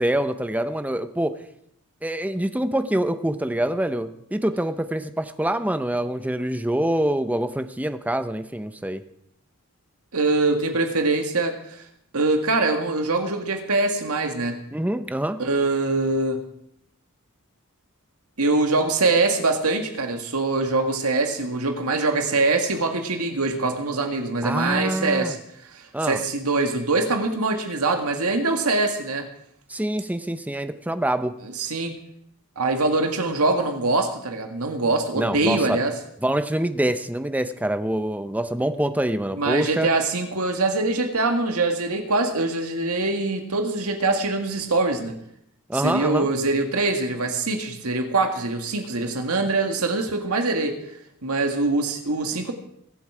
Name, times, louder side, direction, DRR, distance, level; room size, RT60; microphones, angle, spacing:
voice 1, 0.0-1.4 2.0-9.0 14.7-15.4 24.4-25.4 25.9-26.2 29.7-31.3 35.1-35.8 36.2-39.9 45.7-46.3, right 1 dB, 5° right, 10 dB, 0.7 m, -25 dB
voice 2, 10.1-11.8 12.1-14.6 15.4-16.4 18.4-25.4 25.7-29.3 31.4-32.0 32.6-36.0 39.3-45.2 45.7-50.8 51.2-52.5, right 3 dB, 75° right, 5 dB, 1.9 m, -23 dB
22.0 x 7.8 x 4.9 m, 0.73 s
head